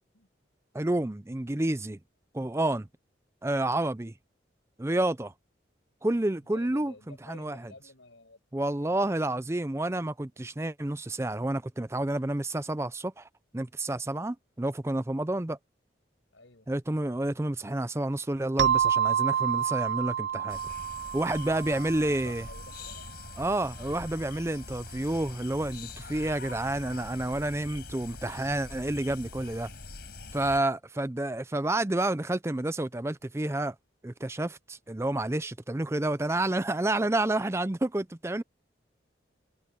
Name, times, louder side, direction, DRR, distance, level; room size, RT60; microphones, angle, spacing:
voice 1, 0.7-2.0 2.3-2.9 3.4-4.1 4.8-5.3 6.0-7.7 8.5-13.3 13.5-15.6 16.7-20.6 21.1-22.5 23.4-29.7 30.3-33.7 34.0-38.4, right 1 dB, 15° right, 0.5 m, -29 dB
voice 2, 6.5-9.0 16.3-16.7 21.3-23.1, left 2 dB, 80° left, 5.9 m, -52 dB
sound 1, 18.6-23.0, right 9 dB, 70° right, 0.4 m, -29 dB
sound 2, 20.5-30.6, left 3 dB, 55° left, 4.7 m, -44 dB
head